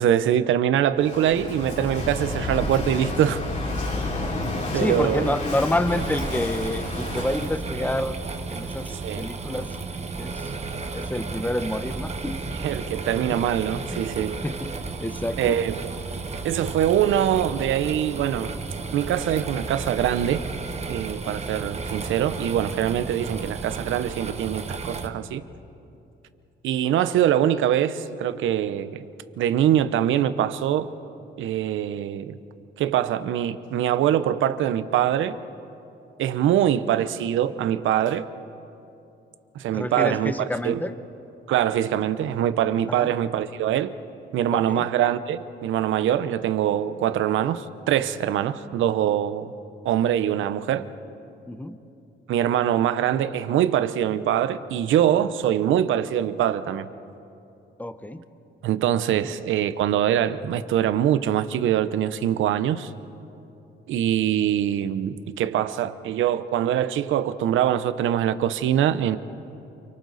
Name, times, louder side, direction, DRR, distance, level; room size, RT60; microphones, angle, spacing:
voice 1, 0.0-3.4 4.7-5.3 8.9-9.3 12.5-14.4 15.4-15.8 16.4-18.6 18.9-20.4 20.9-25.4 26.6-29.1 29.4-30.9 31.4-32.4 32.8-35.4 36.2-38.3 39.5-40.3 40.6-40.8 41.5-43.9 44.3-49.5 49.8-50.9 52.3-56.9 58.6-62.9 63.9-69.2, right 10 dB, 80° right, 0.9 m, -23 dB
Walk footsteps / Wind / Waves surf, 1.0-7.6, left 2 dB, 40° left, 3.3 m, -30 dB
voice 2, 4.7-8.1 8.5-9.7 10.2-10.5 10.9-12.4 13.3-13.4 13.9-14.0 14.4-14.7 15.0-15.6 39.7-40.9 42.9-43.1 44.5-44.9 51.5-51.8 57.8-58.2 59.2-59.3, left 1 dB, 10° left, 1.1 m, -28 dB
sound 1, 5.9-25.1, right 3 dB, 35° right, 1.4 m, -33 dB
29.0 x 24.0 x 4.1 m
cardioid pair, 90°, 20 cm